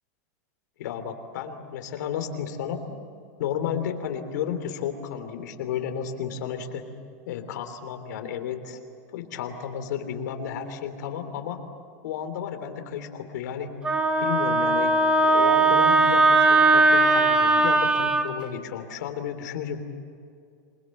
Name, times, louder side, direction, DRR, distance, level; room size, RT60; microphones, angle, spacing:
voice 1, 0.8-2.8 3.4-6.8 7.3-8.8 9.1-11.6 12.0-13.7 14.2-19.8, left 8 dB, 80° left, 7 dB, 3.2 m, -32 dB
Wind instrument woodwind instrument, 13.8-18.2, right 2 dB, 10° right, 1.3 m, -19 dB
27.5 x 21.0 x 7.8 m, 2.3 s
supercardioid pair, 155°, 9 cm